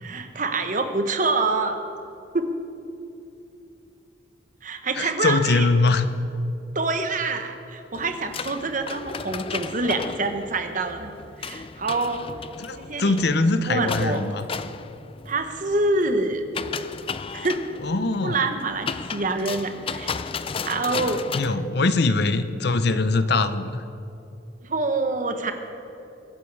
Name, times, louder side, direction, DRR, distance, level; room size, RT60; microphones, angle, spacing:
voice 1, 0.0-1.8 2.3-2.5 4.6-5.7 6.7-11.1 11.4-12.2 12.8-13.2 13.6-14.2 15.3-16.4 17.3-17.6 18.2-20.4 20.6-21.2 24.6-25.5, right 3 dB, 45° right, 7 dB, 1.1 m, -26 dB
voice 2, 4.9-6.1 12.6-14.5 17.8-18.5 21.3-23.8, left 3 dB, 60° left, 12 dB, 0.7 m, -22 dB
sound 1, 7.9-21.6, left 5 dB, 30° left, 0.4 m, -35 dB
23.0 x 10.0 x 4.8 m, 2.8 s
head